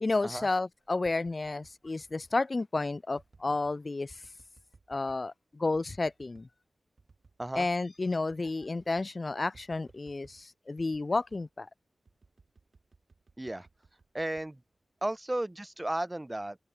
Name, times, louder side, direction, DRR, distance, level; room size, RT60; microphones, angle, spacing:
voice 1, 0.0-4.2 4.9-6.5 7.6-11.7, left 3 dB, 45° left, 0.3 m, -31 dB
sound 1, 0.8-2.1 3.1-3.8 4.2-5.3 5.7-6.5 7.0-7.7 8.0-8.1 8.3-9.1 9.5-10.4 10.8-11.5 12.0-15.2 15.6-16.0, right 4 dB, 60° right, 6.2 m, -61 dB
voice 2, 13.4-13.7 14.1-14.6 15.0-16.6, right 1 dB, 20° right, 2.0 m, -34 dB
cardioid pair, 45°, 0 cm